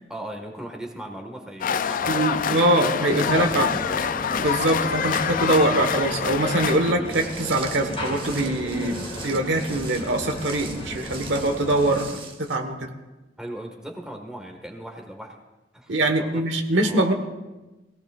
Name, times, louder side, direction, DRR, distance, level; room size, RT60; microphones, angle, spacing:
voice 1, 0.1-4.0 13.4-15.4 15.7-15.9 16.2-16.4 16.8-17.1, right 1 dB, 5° right, 2 dB, 1.6 m, -38 dB
sound 1, 1.6-6.9, left 7 dB, 45° left, 0.4 m, -26 dB
voice 2, 2.1-3.7 4.4-12.1 12.4-12.9 15.9-17.1, right 1 dB, 70° right, 5 dB, 1.3 m, -23 dB
sound 2, 3.2-12.0, left 1 dB, 30° left, 2.4 m, -34 dB
Walk footsteps, 7.1-12.6, right 4 dB, 30° right, 1.4 m, -41 dB
21.0 x 17.0 x 2.5 m, 1.1 s
head